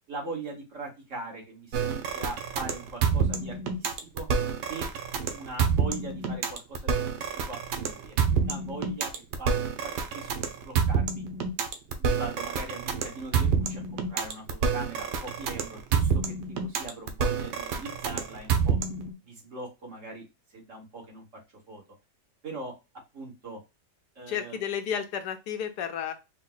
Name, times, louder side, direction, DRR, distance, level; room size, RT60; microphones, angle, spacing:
voice 1, 0.1-4.3 4.7-4.9 5.3-9.1 9.4-9.6 9.8-11.2 12.0-16.3 16.6-18.8 19.2-20.2 20.5-21.2 21.7-21.8 22.4-22.7 23.1-23.6 24.1-24.6, right 3 dB, 45° right, -2 dB, 1.7 m, -40 dB
sound 1, 1.7-19.1, right 6 dB, 75° right, 1.3 m, -28 dB
voice 2, 24.3-26.1, left 8 dB, 75° left, 7 dB, 1.3 m, -32 dB
4.4 x 2.2 x 3.8 m, 0.26 s
omnidirectional pair, 1.8 m